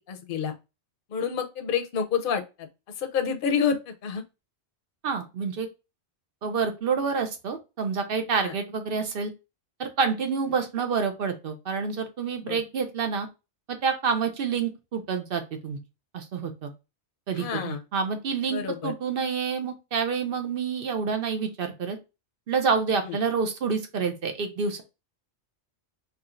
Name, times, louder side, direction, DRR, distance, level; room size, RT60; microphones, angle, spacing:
voice 1, 0.1-0.5 1.1-2.7 3.0-4.2 8.4-8.5 12.4-12.6 17.3-17.8 18.5-18.9 23.0-23.2, left 7 dB, 55° left, 0.8 m, -28 dB
voice 2, 5.0-5.7 6.4-9.3 9.8-13.3 13.7-15.8 16.1-16.7 17.3-22.0 22.5-24.8, right 5 dB, 60° right, 0.8 m, -28 dB
4.7 x 3.1 x 2.4 m
omnidirectional pair, 1.2 m